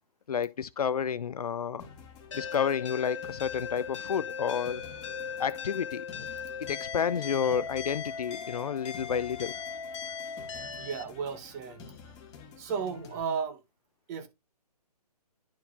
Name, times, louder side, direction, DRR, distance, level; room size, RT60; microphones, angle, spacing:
voice 1, 0.3-1.9 2.3-4.8 5.4-6.3 6.7-9.5, left 7 dB, 65° left, 0.5 m, -30 dB
sound 1, 1.8-13.2, left 5 dB, 20° left, 1.1 m, -50 dB
sound 2, 2.3-11.0, left 6 dB, 50° left, 1.2 m, -38 dB
voice 2, 10.8-11.9 12.6-13.6 14.1-14.3, right 6 dB, 25° right, 1.0 m, -34 dB
11.5 x 4.6 x 2.4 m
figure-of-eight pair, 140°, 20 cm